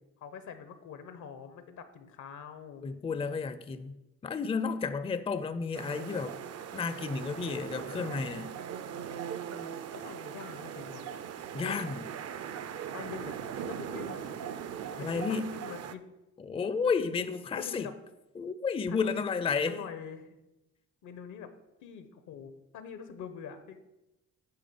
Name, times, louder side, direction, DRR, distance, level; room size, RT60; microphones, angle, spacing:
voice 1, 0.2-2.8 9.5-11.1 11.7-11.8 12.9-14.4 15.0-15.2 15.5-16.0 17.6-18.0 18.9-19.2 19.6-20.4 21.0-21.5 21.8-23.8, left 7 dB, 80° left, 1.0 m, -45 dB
voice 2, 2.8-6.4 6.7-8.5 11.5-12.1 15.0-15.5 16.4-17.9 18.4-19.8, left 5 dB, 20° left, 0.4 m, -32 dB
sound 1, 5.7-16.0, right 8 dB, 55° right, 0.6 m, -40 dB
8.7 x 3.6 x 6.9 m
cardioid pair, 90°, 30 cm